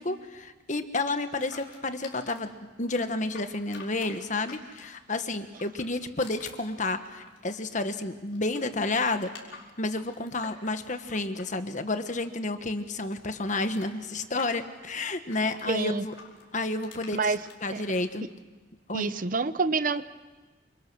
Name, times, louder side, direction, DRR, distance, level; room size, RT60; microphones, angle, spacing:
voice 1, 0.0-9.3 9.8-16.1 16.5-17.3 17.6-18.3 18.9-19.2, left 2 dB, 40° left, 8 dB, 1.5 m, -31 dB
sound 1, 1.1-2.5 2.9-5.1 5.5-8.0 8.3-12.5 12.7-15.7 16.1-18.0, left 5 dB, 85° left, 4.8 m, -49 dB
voice 2, 15.7-16.0 17.1-17.4 17.7-17.8 18.9-20.0, right 4 dB, 45° right, 13 dB, 0.8 m, -27 dB
28.0 x 26.0 x 6.4 m, 1.3 s
head